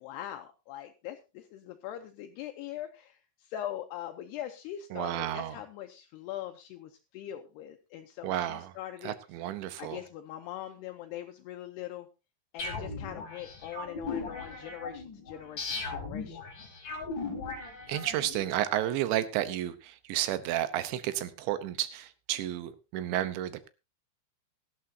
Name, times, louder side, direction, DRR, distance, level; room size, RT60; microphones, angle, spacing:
voice 1, 0.0-9.2 9.8-12.1 12.5-16.4, left 12 dB, 75° left, 5 dB, 2.7 m, -42 dB
voice 2, 4.9-5.6 8.2-8.7 9.0-10.0 17.9-23.7, right 13 dB, 85° right, 13 dB, 3.3 m, -32 dB
sound 1, 12.6-18.4, left 3 dB, 25° left, 4.4 m, -38 dB
17.5 x 12.5 x 2.8 m, 0.29 s
omnidirectional pair, 5.1 m